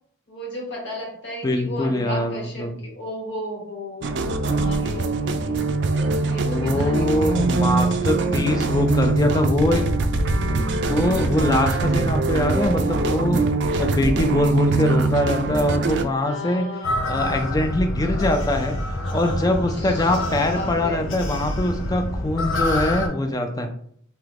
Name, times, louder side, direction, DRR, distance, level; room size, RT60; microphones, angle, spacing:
voice 1, 0.3-5.6 5.9-7.8 16.2-17.7 19.7-20.2 20.5-21.0, left 1 dB, 65° left, 0 dB, 1.0 m, -35 dB
voice 2, 1.4-2.7 6.1-9.9 10.7-13.5 13.7-16.7 17.1-18.8 19.1-23.7, left 1 dB, 20° left, 5 dB, 0.3 m, -23 dB
sound 1, 4.0-16.0, right 3 dB, 60° right, 0.3 m, -22 dB
sound 2, 16.8-23.1, left 1 dB, 90° left, 0.6 m, -27 dB
2.8 x 2.4 x 3.4 m, 0.63 s
head